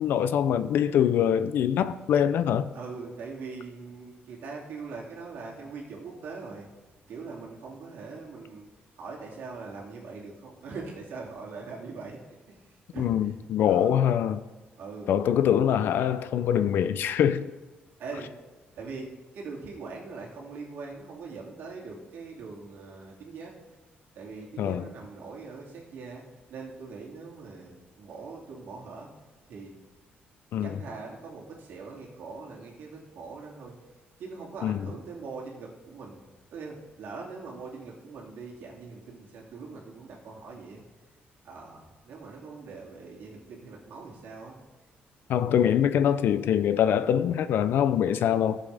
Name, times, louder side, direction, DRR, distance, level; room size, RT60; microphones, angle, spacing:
voice 1, 0.0-2.7 13.0-14.4 15.1-17.5 24.6-24.9 30.5-30.8 34.6-34.9 45.3-48.6, left 9 dB, 70° left, 0.5 m, -24 dB
voice 2, 2.7-6.7 7.1-8.7 9.0-12.2 12.5-13.4 13.6-14.0 14.8-15.1 18.0-18.3 18.8-23.5 24.1-26.2 26.5-29.1 29.5-29.8 30.6-33.7 34.2-36.2 36.5-40.8 41.4-44.6 45.5-45.7, right 4 dB, 70° right, 2.7 m, -42 dB
18.0 x 7.5 x 3.5 m
cardioid pair, 165°, 4 cm